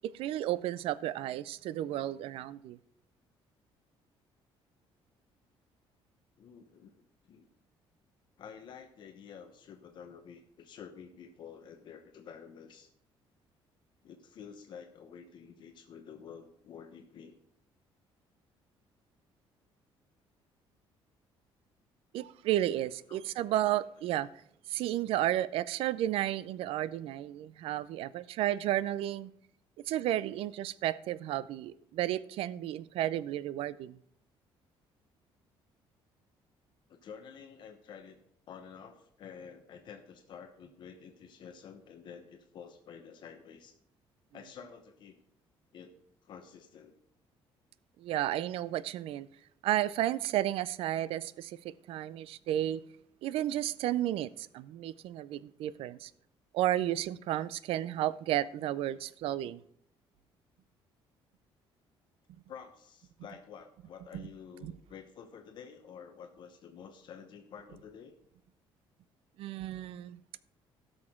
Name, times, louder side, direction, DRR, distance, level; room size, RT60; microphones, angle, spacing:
voice 1, 0.1-2.8 22.1-24.3 24.7-29.3 29.9-34.0 48.0-49.3 49.6-52.8 53.2-56.1 56.5-59.6 64.1-64.3 64.6-64.7 69.4-70.2, right 13 dB, 70° right, 18 dB, 0.4 m, -32 dB
voice 2, 6.4-7.5 8.4-12.9 14.0-17.4 23.1-23.2 36.9-38.2 38.5-43.7 44.3-45.2 45.7-45.9 46.2-46.9 62.5-68.2, left 7 dB, 50° left, 5 dB, 0.9 m, -50 dB
16.5 x 6.4 x 3.7 m, 0.69 s
cardioid pair, 155°, 10 cm